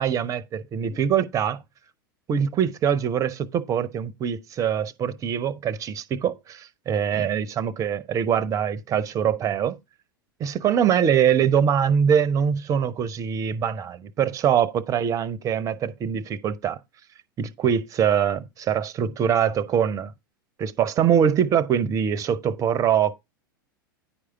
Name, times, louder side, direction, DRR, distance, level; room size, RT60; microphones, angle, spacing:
voice 1, 0.0-1.6 2.3-9.8 10.4-16.8 17.4-20.1 20.6-23.1, right 8 dB, 30° right, 0.8 m, -23 dB
10.0 x 4.9 x 4.4 m
figure-of-eight pair, 90°, 12 cm